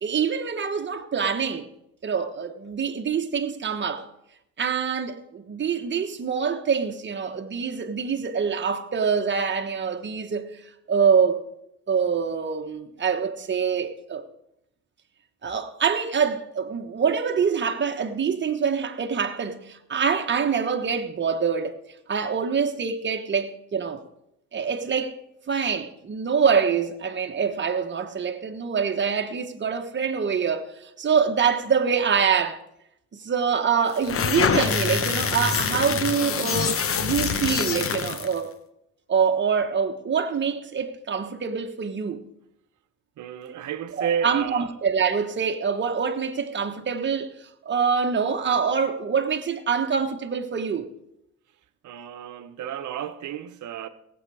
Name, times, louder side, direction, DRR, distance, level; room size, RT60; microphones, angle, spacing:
voice 1, 0.0-1.7 2.0-4.1 4.6-11.4 11.9-14.2 15.4-21.8 22.1-24.0 24.5-25.2 25.5-30.7 31.0-32.6 33.1-38.5 39.1-42.2 44.0-47.3 47.6-50.9, right 6 dB, 40° right, 1.3 m, -25 dB
sound 1, 33.9-38.4, left 6 dB, 45° left, 1.1 m, -25 dB
voice 2, 43.2-44.7 51.8-53.9, right 8 dB, 75° right, 1.0 m, -31 dB
17.5 x 8.1 x 4.9 m
cardioid pair, 90°, 30 cm